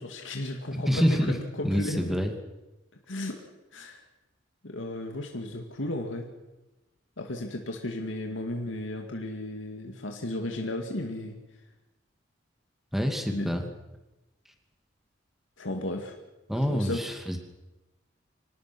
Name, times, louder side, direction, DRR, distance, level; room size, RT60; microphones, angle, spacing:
voice 1, 0.0-1.0 1.6-2.2 3.1-3.4 3.7-4.0 4.6-6.3 7.2-11.4 13.3-13.6 15.6-16.2 16.7-17.0, left 1 dB, 80° left, 3 dB, 2.3 m, -34 dB
voice 2, 0.7-1.4 1.6-2.3 12.9-13.7 16.5-17.4, equal, ahead, 4 dB, 2.6 m, -26 dB
26.0 x 18.0 x 6.2 m, 1.0 s
head